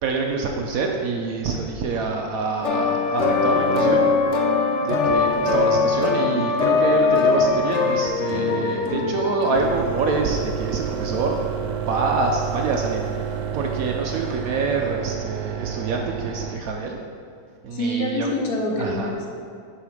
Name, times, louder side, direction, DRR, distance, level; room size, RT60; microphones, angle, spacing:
voice 1, 0.0-4.0 4.8-11.4 11.7-13.0 13.5-17.0 17.6-18.3 18.8-19.1, right 4 dB, 75° right, 1 dB, 0.8 m, -26 dB
sound 1, 2.6-10.2, left 4 dB, 85° left, 0.6 m, -21 dB
sound 2, 9.5-16.6, right 8 dB, 90° right, 1.3 m, -30 dB
voice 2, 17.7-19.3, left 1 dB, 60° left, 0 dB, 1.3 m, -25 dB
6.9 x 4.9 x 4.9 m, 2.4 s
omnidirectional pair, 2.0 m